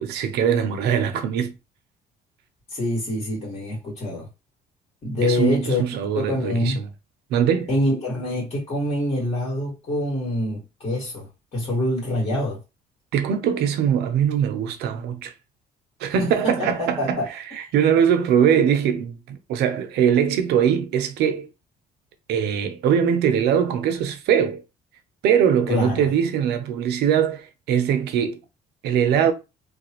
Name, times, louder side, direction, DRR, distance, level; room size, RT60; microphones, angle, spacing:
voice 1, 0.0-1.5 5.2-6.9 7.3-7.7 13.1-15.3 16.0-21.5 22.3-24.6 25.2-28.4 28.8-29.3, right 8 dB, 75° right, 0.7 m, -21 dB
voice 2, 2.7-4.3 5.0-5.8 6.1-6.8 7.7-11.3 11.5-12.6 16.2-17.3 25.7-26.1, left 1 dB, 40° left, 2.0 m, -25 dB
3.2 x 2.3 x 3.0 m
cardioid pair, 110°, 17 cm